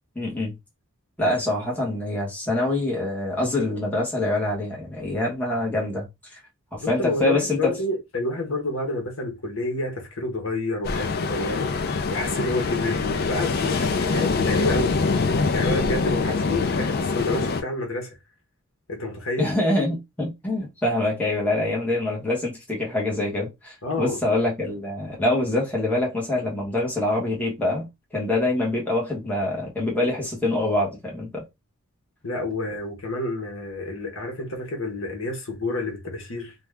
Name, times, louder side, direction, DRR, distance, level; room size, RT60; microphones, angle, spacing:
voice 1, 0.1-0.6 1.2-6.1 6.7-7.8 19.4-27.9 28.1-31.4, left 1 dB, 5° left, 1.1 m, -25 dB
voice 2, 6.8-15.1 15.5-18.2 18.9-19.5 23.8-24.2 32.2-36.5, left 2 dB, 60° left, 1.0 m, -29 dB
Ocean, 10.8-17.6, left 4 dB, 45° left, 0.4 m, -24 dB
2.7 x 2.3 x 3.3 m
head